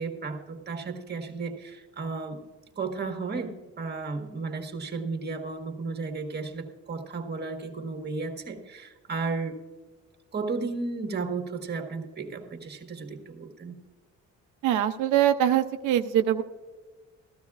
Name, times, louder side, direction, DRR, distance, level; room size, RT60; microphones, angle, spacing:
voice 1, 0.0-2.4 2.7-9.6 10.3-13.8, right 4 dB, 35° right, 4 dB, 1.6 m, -34 dB
voice 2, 14.6-16.4, right 11 dB, 85° right, 8 dB, 0.6 m, -23 dB
15.0 x 12.5 x 2.4 m, 1.3 s
cardioid pair, 90°, 30 cm